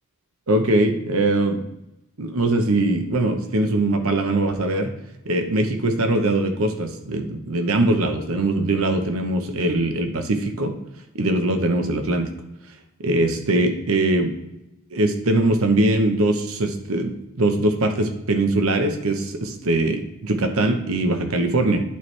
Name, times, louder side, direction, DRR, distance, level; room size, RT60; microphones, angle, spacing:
voice 1, 0.5-1.6 2.2-4.9 5.3-10.7 11.1-12.3 13.0-14.3 14.9-21.8, right 2 dB, 80° right, 6 dB, 0.9 m, -21 dB
11.5 x 4.5 x 3.3 m, 0.92 s
head